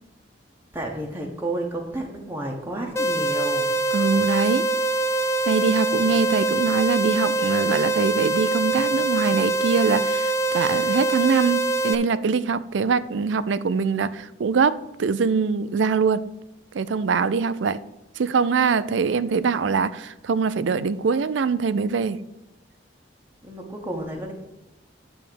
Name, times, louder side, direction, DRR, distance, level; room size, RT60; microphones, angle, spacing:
voice 1, 0.7-3.7 6.0-6.2 23.4-24.3, right 1 dB, 10° right, 1.0 m, -31 dB
sound 1, 3.0-12.0, right 2 dB, 15° left, 0.4 m, -24 dB
voice 2, 3.9-4.7 5.5-16.2 16.7-17.8 18.2-22.2, right 5 dB, 75° right, 0.4 m, -23 dB
9.2 x 3.5 x 6.8 m
head